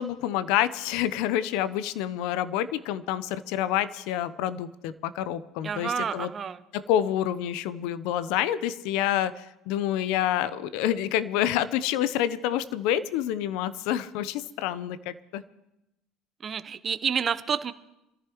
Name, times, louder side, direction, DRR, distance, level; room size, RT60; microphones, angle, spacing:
voice 1, 0.0-6.3 6.7-15.4, left 11 dB, 65° left, 14 dB, 0.8 m, -28 dB
voice 2, 5.6-6.6 16.4-17.7, right 7 dB, 35° right, 13 dB, 0.8 m, -29 dB
26.0 x 14.0 x 3.1 m, 0.89 s
hypercardioid pair, 65°, 0 cm